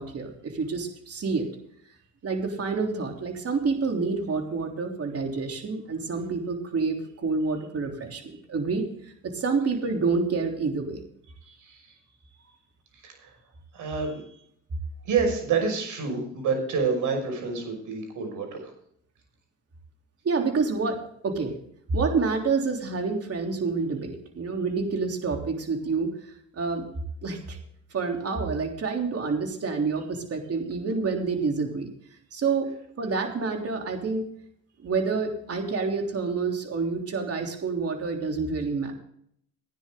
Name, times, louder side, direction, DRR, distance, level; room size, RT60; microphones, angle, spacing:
voice 1, 0.0-1.5 2.2-8.9 9.2-11.0 20.2-21.5 21.9-26.1 26.5-26.9 27.2-27.6 27.9-31.9 32.3-32.7 33.0-34.3 34.8-38.9, right 4 dB, 50° right, 3 dB, 3.4 m, -28 dB
voice 2, 11.4-12.0 13.0-13.3 13.7-14.4 15.0-18.7, right 5 dB, 75° right, 4 dB, 5.8 m, -28 dB
16.0 x 10.0 x 3.8 m, 0.67 s
supercardioid pair, 75°, 31 cm